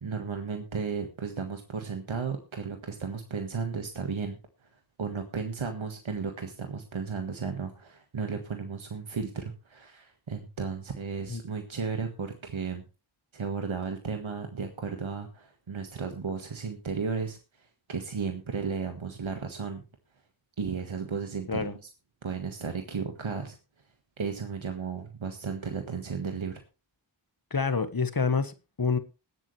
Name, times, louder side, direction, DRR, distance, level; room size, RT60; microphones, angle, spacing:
voice 1, 0.0-4.4 5.0-12.8 13.3-19.8 20.6-21.7 22.2-23.6 24.2-26.6, right 5 dB, 80° right, 1.7 m, -34 dB
voice 2, 27.5-29.0, left 5 dB, 45° left, 1.4 m, -27 dB
20.0 x 8.5 x 3.3 m
wide cardioid pair, 45°, 47 cm